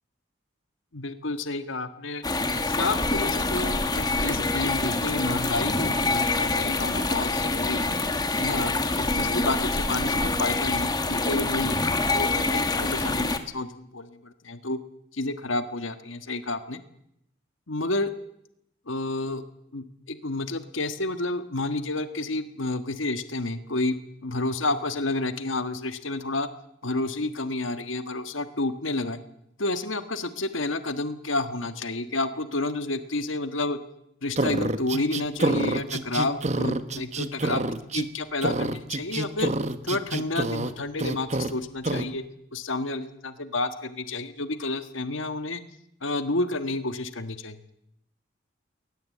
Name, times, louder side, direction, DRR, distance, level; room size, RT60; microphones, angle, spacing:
voice 1, 0.9-2.2 2.7-7.8 8.4-11.8 12.1-14.8 15.1-16.8 17.7-18.1 18.9-19.4 19.7-24.0 24.2-26.5 26.8-29.2 29.6-33.8 34.2-37.6 37.9-39.5 39.8-42.2 42.5-45.6 46.0-47.6, left 2 dB, 90° left, 10 dB, 1.6 m, -30 dB
sound 1, 2.2-13.4, left 3 dB, 20° left, 1.5 m, -26 dB
sound 2, 34.4-38.1 38.4-40.7 41.0-41.5 41.8-42.1, right 2 dB, 35° right, 1.1 m, -27 dB
21.0 x 19.5 x 8.6 m, 0.75 s
head